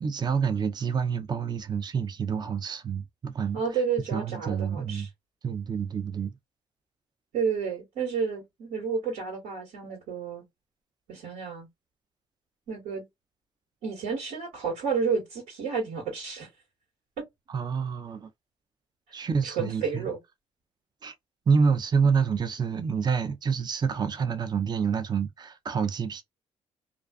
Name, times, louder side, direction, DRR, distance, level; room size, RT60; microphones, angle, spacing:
voice 1, 0.0-3.6 4.1-5.1 5.4-6.3 17.5-18.3 19.1-20.1 21.0-21.1 21.5-26.2, right 6 dB, 35° right, 0.5 m, -27 dB
voice 2, 3.5-5.1 7.3-10.4 11.1-11.7 12.7-13.0 13.8-16.5 17.2-17.3 19.1-20.2, right 5 dB, 80° right, 1.4 m, -31 dB
2.4 x 2.4 x 2.3 m
supercardioid pair, 60°, 12 cm